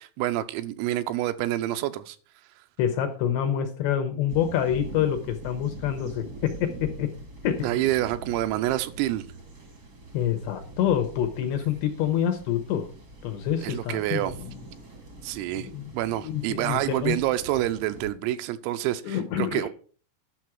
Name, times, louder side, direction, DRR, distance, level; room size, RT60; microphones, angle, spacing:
voice 1, 0.0-2.2 7.6-9.3 13.6-14.4 15.2-19.7, right 14 dB, 85° right, 3.5 m, -27 dB
voice 2, 2.8-7.1 7.4-7.7 10.1-12.9 13.2-14.3 15.6-15.9 16.2-17.2 19.0-19.7, left 9 dB, 75° left, 2.8 m, -27 dB
sound 1, 4.3-18.1, right 2 dB, 50° right, 1.1 m, -44 dB
11.5 x 6.3 x 6.0 m
omnidirectional pair, 6.0 m